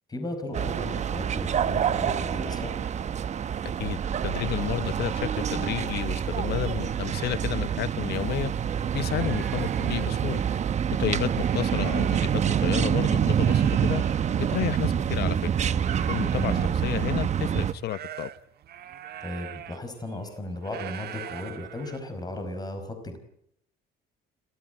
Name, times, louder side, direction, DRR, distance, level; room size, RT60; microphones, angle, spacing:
voice 1, 0.1-2.8 9.1-9.4 11.1-11.3 16.3-16.7 19.2-23.2, left 1 dB, 20° left, 4.9 m, -36 dB
sound 1, 0.5-17.7, right 8 dB, 40° right, 0.9 m, -26 dB
voice 2, 3.8-8.5 8.9-10.4 11.0-14.0 14.4-15.5 16.1-18.3, left 13 dB, 60° left, 0.9 m, -31 dB
sound 2, 8.1-12.9 13.2-22.4, right 11 dB, 60° right, 1.7 m, -44 dB
29.0 x 14.0 x 9.1 m
cardioid pair, 115°, 18 cm